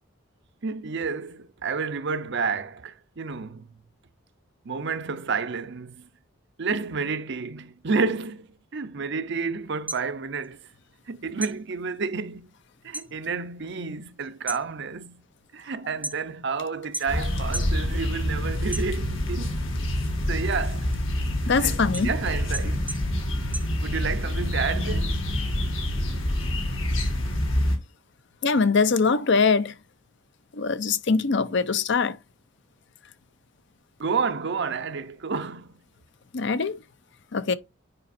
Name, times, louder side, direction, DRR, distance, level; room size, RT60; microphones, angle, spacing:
voice 1, 0.6-3.7 4.6-6.1 6.6-10.7 11.1-12.5 12.8-15.2 15.5-19.6 20.3-20.9 21.5-22.9 23.8-25.2 34.0-35.7, right 5 dB, 60° right, 0.7 m, -30 dB
sound 1, 9.7-11.1 11.4-13.1 13.5-13.9 14.3-16.5 16.9-17.8 18.2-19.4 19.8-24.3, right 2 dB, 10° right, 0.5 m, -37 dB
sound 2, 17.1-27.8, left 1 dB, 90° left, 2.0 m, -27 dB
voice 2, 21.5-22.1 28.4-29.7 30.5-32.2 36.3-36.7 37.3-37.5, left 4 dB, 65° left, 0.6 m, -22 dB
9.8 x 5.1 x 2.6 m
head